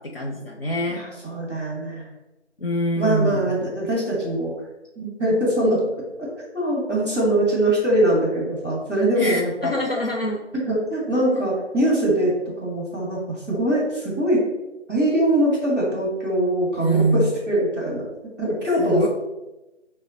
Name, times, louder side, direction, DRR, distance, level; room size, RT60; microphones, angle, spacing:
voice 1, 0.0-1.0 2.6-3.5 9.2-10.4 11.4-11.5 16.8-17.3 18.8-19.1, right 1 dB, 55° left, -1 dB, 0.5 m, -24 dB
voice 2, 0.9-2.0 3.0-4.5 4.9-5.8 6.5-9.7 10.7-14.4 14.9-18.0 18.4-19.1, right 1 dB, 10° left, -9 dB, 1.3 m, -22 dB
5.6 x 2.1 x 3.9 m, 1.0 s
figure-of-eight pair, 175°, 36 cm